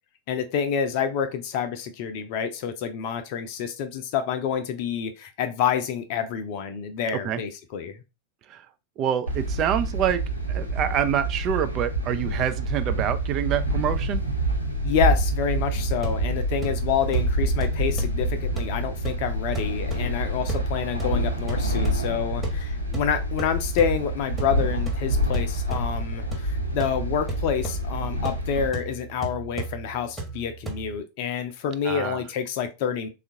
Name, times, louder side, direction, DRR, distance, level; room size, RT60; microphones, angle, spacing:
voice 1, 0.3-8.0 14.8-33.1, left 8 dB, 45° left, 0.6 m, -28 dB
voice 2, 9.0-10.2 10.5-14.2 31.8-32.2, right 9 dB, 35° right, 0.3 m, -26 dB
sound 1, 9.3-28.7, right 1 dB, 85° left, 0.7 m, -27 dB
sound 2, 15.9-31.0, right 4 dB, 10° right, 1.0 m, -36 dB
3.5 x 2.4 x 2.6 m
figure-of-eight pair, 90°, 0 cm